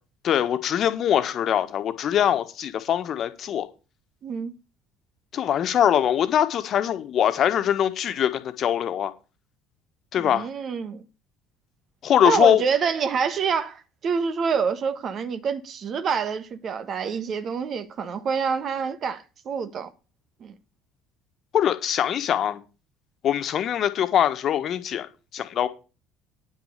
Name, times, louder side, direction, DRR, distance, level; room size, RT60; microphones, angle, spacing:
voice 1, 0.2-3.7 5.3-9.1 10.1-10.5 12.0-12.6 21.5-22.6 23.2-25.1 25.3-25.7, left 10 dB, 50° left, 1.5 m, -22 dB
voice 2, 4.2-4.5 10.2-11.0 12.2-19.9 20.4-20.5, right 6 dB, 50° right, 1.5 m, -27 dB
9.8 x 6.4 x 6.7 m
hypercardioid pair, 60°, 0 cm